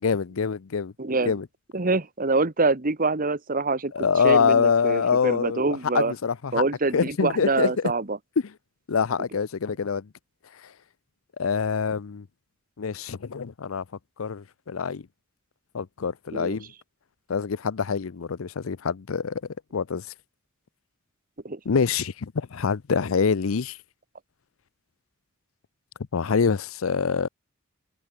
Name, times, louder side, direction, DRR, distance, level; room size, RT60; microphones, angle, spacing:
voice 1, 0.0-0.9 1.2-1.5 3.9-6.6 6.9-7.7 8.4-8.5 8.9-10.1 11.4-12.3 12.8-13.8 14.2-15.0 15.7-16.7 17.3-19.4 19.7-20.0 21.7-23.8 26.1-27.3, left 6 dB, 85° left, 0.6 m, -25 dB
voice 2, 1.0-1.3 1.7-6.1 6.5-8.2 16.3-16.6 21.4-21.6, right 3 dB, 45° right, 1.4 m, -25 dB
head